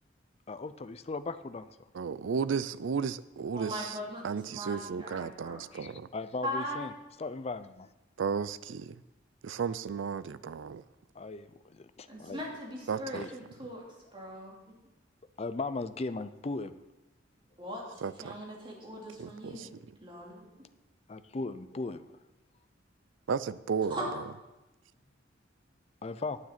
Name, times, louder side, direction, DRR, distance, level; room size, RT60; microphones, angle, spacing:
voice 1, 0.5-1.7 5.7-6.9 7.2-7.9 11.2-12.4 13.1-13.3 15.4-16.7 21.1-22.0 26.0-26.4, left 3 dB, 35° left, 12 dB, 0.5 m, -37 dB
voice 2, 1.9-4.0 4.2-6.1 8.2-9.0 9.4-10.8 12.9-13.3 18.0-18.4 19.2-20.0 23.3-24.2, right 6 dB, 80° right, 16 dB, 0.4 m, -34 dB
voice 3, 3.6-5.6 6.4-6.9 12.1-13.8 14.1-14.5 17.6-19.7 20.0-20.5 23.9-24.1, equal, 25° right, -3 dB, 2.8 m, -39 dB
9.7 x 9.0 x 5.9 m, 1.0 s
head